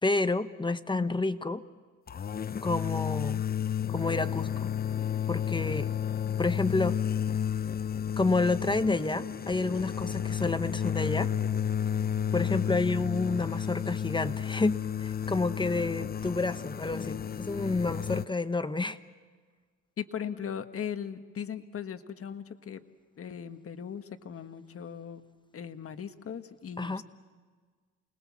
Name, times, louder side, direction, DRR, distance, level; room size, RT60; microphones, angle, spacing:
voice 1, 0.0-1.6 2.6-3.4 3.9-4.7 5.3-5.9 6.4-7.0 8.2-11.3 12.3-19.0 26.8-27.0, left 3 dB, 15° left, 12 dB, 1.0 m, -29 dB
sound 1, 2.1-18.3, left 9 dB, 30° left, 0.6 m, -32 dB
sound 2, 8.6-13.8, right 3 dB, 75° left, 2.1 m, -52 dB
voice 2, 20.0-22.8 23.2-25.2 25.5-27.0, left 8 dB, 50° left, 9 dB, 1.5 m, -38 dB
28.5 x 20.5 x 7.4 m, 1.5 s
cardioid pair, 90°, 30 cm